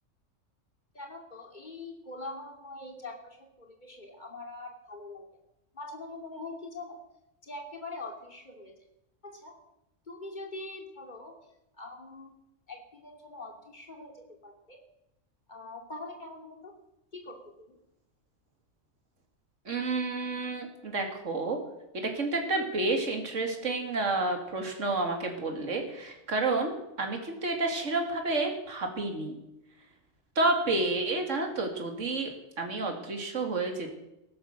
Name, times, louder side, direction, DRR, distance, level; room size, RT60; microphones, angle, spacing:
voice 1, 0.9-5.3 5.7-7.0 7.4-8.7 9.2-9.6 10.1-11.3 11.8-12.4 12.7-14.8 15.5-16.7 17.1-17.8, left 2 dB, 35° left, 2 dB, 2.9 m, -43 dB
voice 2, 19.7-21.6 21.9-29.4 30.4-32.3 32.6-33.9, right 2 dB, 70° right, 3 dB, 2.6 m, -30 dB
15.5 x 12.0 x 6.6 m, 0.88 s
omnidirectional pair, 1.3 m